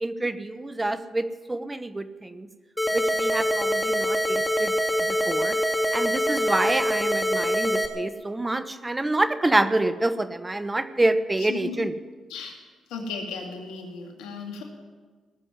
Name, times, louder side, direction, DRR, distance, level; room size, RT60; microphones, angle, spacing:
voice 1, 0.0-2.5 2.9-4.7 5.1-5.6 5.9-11.9, right 2 dB, 20° right, 12 dB, 1.1 m, -27 dB
sound 1, 2.8-7.9, equal, 10° left, 2.1 m, -24 dB
voice 2, 12.9-14.6, left 4 dB, 85° left, 2 dB, 2.4 m, -35 dB
18.0 x 7.6 x 9.6 m, 1.4 s
supercardioid pair, 50°, 0 cm